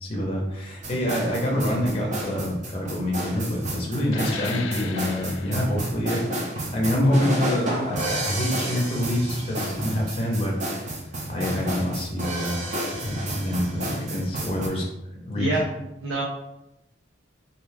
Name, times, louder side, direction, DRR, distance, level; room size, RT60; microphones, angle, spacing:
voice 1, 0.0-10.9 11.3-12.6 13.0-14.9 15.2-15.5, equal, 30° left, -2 dB, 0.6 m, -26 dB
sound 1, 0.8-14.7, right 1 dB, 40° right, 0.6 m, -31 dB
sound 2, 4.0-9.2, left 5 dB, 80° left, 0.3 m, -39 dB
voice 2, 15.4-16.2, right 2 dB, 85° right, -4 dB, 0.5 m, -27 dB
2.5 x 2.3 x 3.2 m, 0.88 s
head